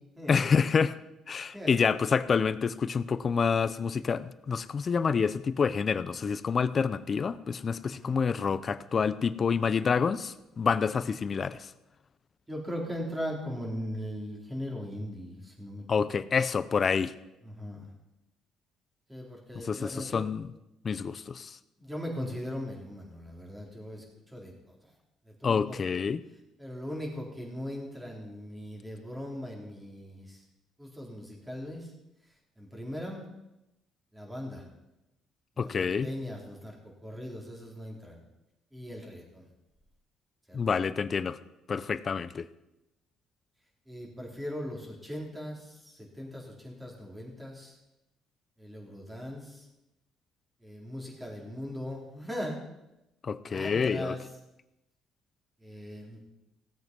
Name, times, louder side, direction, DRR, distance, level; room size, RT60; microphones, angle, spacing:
voice 1, 0.3-1.0 1.3-11.6 15.9-17.1 19.6-20.5 20.8-21.6 25.4-26.2 35.6-36.1 40.5-41.4 41.7-42.5 53.2-54.2, left 6 dB, 40° left, 16 dB, 0.6 m, -28 dB
voice 2, 12.5-15.8 17.4-17.9 19.1-20.2 21.8-24.0 24.3-24.5 25.4-25.8 26.6-30.4 30.8-31.9 32.6-33.2 34.1-34.6 35.6-36.8 37.0-38.2 38.7-39.4 40.5-40.6 43.9-45.7 46.2-47.7 48.6-49.6 50.6-52.6 53.5-54.2 55.6-56.2, equal, 10° right, -1 dB, 3.9 m, -39 dB
17.0 x 8.0 x 5.4 m, 0.92 s
cardioid pair, 100°, 0 cm